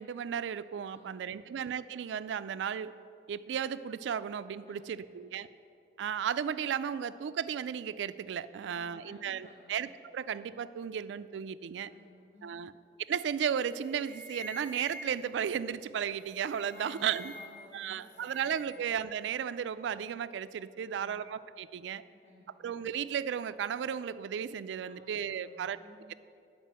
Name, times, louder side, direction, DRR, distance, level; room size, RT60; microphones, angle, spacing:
voice 1, 0.0-2.9 3.3-5.5 6.0-11.9 12.4-12.7 13.1-17.3 17.7-22.0 22.6-25.8, right 8 dB, 85° right, 15 dB, 0.3 m, -34 dB
voice 2, 0.9-1.6 4.6-5.3 8.6-9.8 11.9-12.7 16.7-18.8 20.8-21.2 22.2-22.8 24.8-26.1, left 1 dB, 35° left, -5 dB, 1.1 m, -56 dB
sound 1, 13.3-13.5 13.8-15.4 16.3-17.7 18.0-18.8, left 1 dB, 80° left, 0.7 m, -48 dB
9.1 x 4.9 x 7.4 m, 2.5 s
head